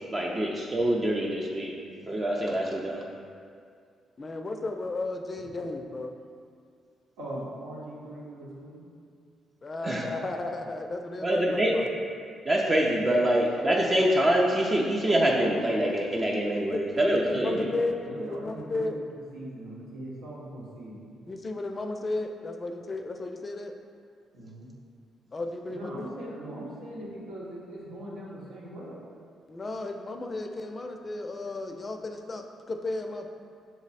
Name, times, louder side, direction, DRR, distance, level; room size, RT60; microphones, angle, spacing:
voice 1, 0.1-1.7 2.1-3.0 9.8-10.0 11.2-11.8 12.5-17.7, right 1 dB, 30° right, -2 dB, 0.5 m, -25 dB
voice 2, 4.2-6.1 9.6-11.9 16.7-16.8 17.2-19.0 21.3-23.7 25.3-26.1 29.5-33.3, left 2 dB, 35° left, 4 dB, 0.4 m, -34 dB
voice 3, 7.2-8.8 17.3-17.7 18.0-19.0 19.3-21.2 24.3-24.7 25.7-29.0, right 1 dB, 90° right, -7 dB, 1.1 m, -40 dB
5.9 x 2.0 x 4.1 m, 2.2 s
supercardioid pair, 70°, 0 cm